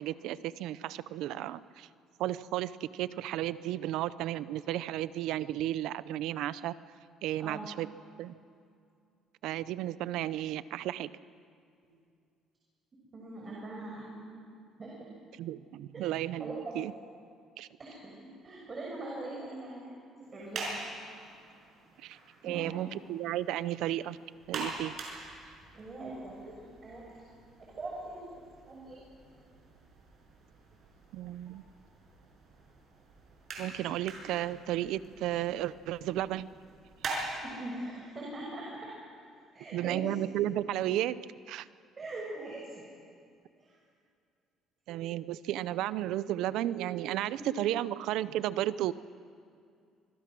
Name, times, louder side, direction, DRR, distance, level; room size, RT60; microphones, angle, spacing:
voice 1, 0.0-1.9 2.2-6.7 7.2-7.9 8.2-8.4 9.4-11.1 15.4-16.9 17.6-17.7 22.0-22.2 22.4-24.2 24.5-25.0 31.1-31.6 33.6-36.5 39.7-41.2 41.5-41.7 44.9-48.9, right 13 dB, 80° right, 17 dB, 0.6 m, -33 dB
voice 2, 13.1-14.1 14.8-15.0 15.9-16.0 16.4-16.5 17.8-18.0 18.4-20.7 22.4-23.0 25.7-27.0 27.6-29.0 37.4-38.9 39.5-40.1 42.0-42.8 43.6-43.8, right 2 dB, 30° right, -3 dB, 6.2 m, -42 dB
sound 1, 20.2-37.4, right 3 dB, 55° right, 6.2 m, -45 dB
25.5 x 22.0 x 6.2 m, 2.3 s
cardioid pair, 110°, 0 cm